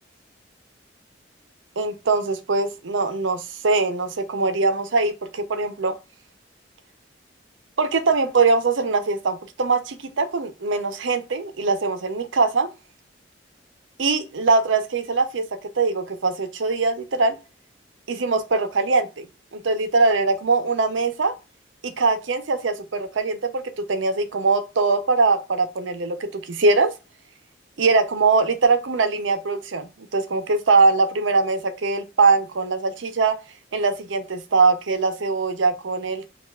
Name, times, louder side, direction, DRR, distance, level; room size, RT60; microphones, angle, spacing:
voice 1, 1.8-5.9 7.8-12.7 14.0-15.4 15.8-17.3 18.1-19.3 19.5-21.3 21.8-23.6 23.9-26.9 27.8-33.3 33.7-36.3, right 3 dB, 90° right, 0.7 m, -22 dB
5.4 x 2.4 x 2.3 m
head